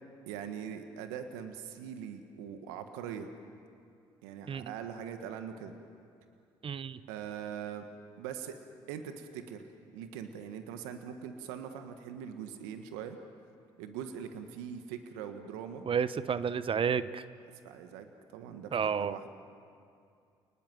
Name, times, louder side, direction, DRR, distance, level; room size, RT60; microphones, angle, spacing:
voice 1, 0.3-3.3 4.2-5.7 7.1-7.9 8.2-8.6 8.9-9.6 9.9-13.2 13.8-15.8 17.6-19.3, right 8 dB, 85° right, 7 dB, 1.5 m, -42 dB
voice 2, 6.6-7.0 15.9-17.2 18.7-19.2, right 7 dB, 45° right, 14 dB, 0.9 m, -31 dB
29.5 x 19.5 x 7.8 m, 2.4 s
hypercardioid pair, 55°, 12 cm